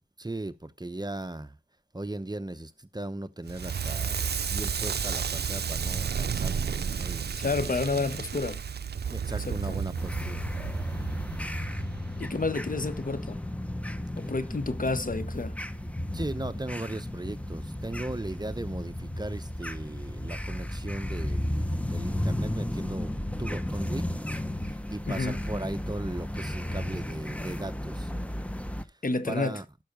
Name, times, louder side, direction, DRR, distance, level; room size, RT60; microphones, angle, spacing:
voice 1, 0.2-1.6 1.9-4.2 4.5-8.2 9.1-10.4 12.4-12.5 14.2-14.3 15.5-24.1 24.5-28.1 28.8-29.0 29.3-29.6, right 2 dB, 25° right, 0.8 m, -38 dB
Crackle, 3.5-12.4, right 7 dB, 80° right, 0.4 m, -32 dB
voice 2, 7.4-8.6 9.4-9.8 12.2-13.4 14.2-15.6 25.1-25.3 29.0-29.6, left 3 dB, 55° left, 0.9 m, -30 dB
sound 1, 9.9-28.8, left 1 dB, 10° left, 0.9 m, -34 dB
12.0 x 5.7 x 5.2 m
wide cardioid pair, 55°, 17 cm